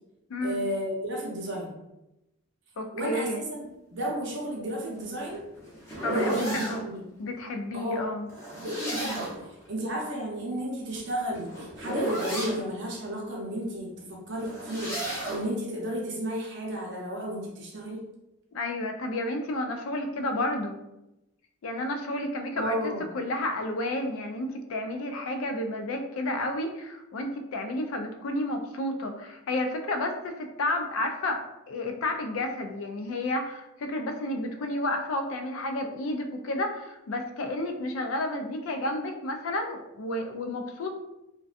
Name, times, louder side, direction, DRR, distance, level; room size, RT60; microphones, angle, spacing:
voice 1, 0.4-1.8 2.9-3.5 3.9-5.4 6.1-7.0 7.7-8.1 8.6-18.0 22.6-23.1, equal, 55° right, -2 dB, 0.6 m, -33 dB
voice 2, 2.8-3.4 6.0-6.8 7.2-8.3 18.5-20.7 21.6-22.8 23.1-40.9, left 1 dB, 75° left, 5 dB, 0.4 m, -31 dB
sound 1, 5.0-6.8 8.3-9.5 10.9-12.6 14.3-15.5, right 1 dB, 10° left, 0.6 m, -33 dB
2.6 x 2.2 x 2.4 m, 0.93 s
head